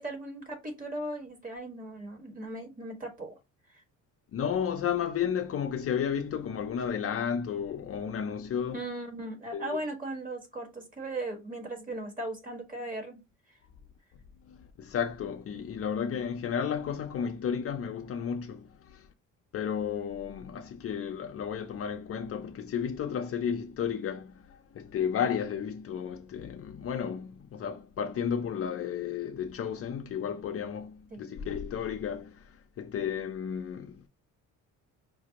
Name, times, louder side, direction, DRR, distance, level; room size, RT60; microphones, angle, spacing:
voice 1, 0.0-3.4 3.7-3.8 8.7-13.2 31.1-31.4, right 1 dB, 25° right, 1.4 m, -38 dB
voice 2, 4.3-8.8 9.5-9.8 14.8-19.1 19.5-32.4 32.8-34.1, left 7 dB, 45° left, 0.5 m, -33 dB
5.0 x 2.0 x 2.8 m
cardioid pair, 115°, 32 cm